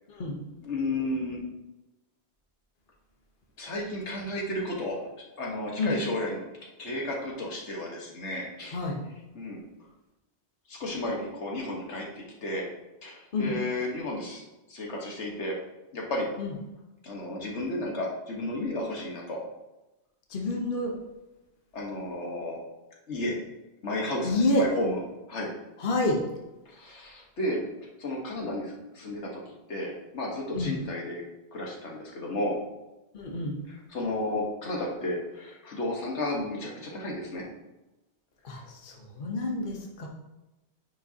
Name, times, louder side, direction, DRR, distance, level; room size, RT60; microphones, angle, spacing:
voice 1, 0.6-1.4 3.6-5.0 5.4-6.4 6.8-8.8 9.3-9.6 10.7-12.7 13.0-14.4 14.7-15.5 15.9-16.3 17.0-19.4 21.7-22.6 23.1-23.4 23.8-25.0 25.3-25.5 26.6-27.6 28.0-29.4 29.7-31.2 31.5-32.6 33.7-37.4, left 1 dB, 85° left, -2 dB, 1.6 m, -33 dB
voice 2, 20.3-20.9 24.2-24.7 25.8-26.2 30.5-30.7 33.1-33.6 38.4-40.1, left 2 dB, 50° left, 0 dB, 1.2 m, -28 dB
9.6 x 5.5 x 2.8 m, 1.0 s
omnidirectional pair, 1.1 m